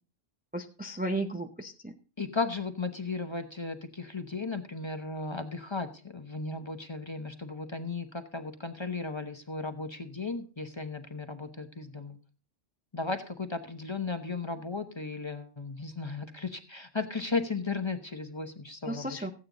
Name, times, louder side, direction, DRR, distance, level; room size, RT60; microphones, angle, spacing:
voice 1, 0.5-1.9 18.9-19.3, right 1 dB, 10° right, 4 dB, 0.6 m, -34 dB
voice 2, 2.2-12.2 12.9-19.3, left 3 dB, 25° left, 7 dB, 0.9 m, -35 dB
15.0 x 8.8 x 3.9 m, 0.38 s
omnidirectional pair, 1.3 m